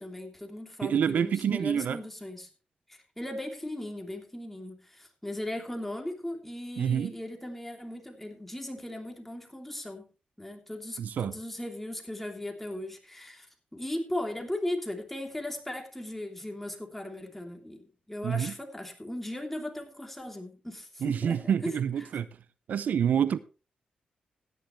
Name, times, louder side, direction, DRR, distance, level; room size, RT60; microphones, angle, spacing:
voice 1, 0.0-2.5 2.9-10.1 10.4-21.7 22.0-22.1, left 1 dB, 5° left, 3.1 m, -38 dB
voice 2, 0.8-2.0 6.8-7.1 11.0-11.3 18.2-18.5 21.0-22.3 22.7-23.4, right 8 dB, 75° right, 0.6 m, -27 dB
16.5 x 10.0 x 3.1 m
cardioid pair, 80°, 3 cm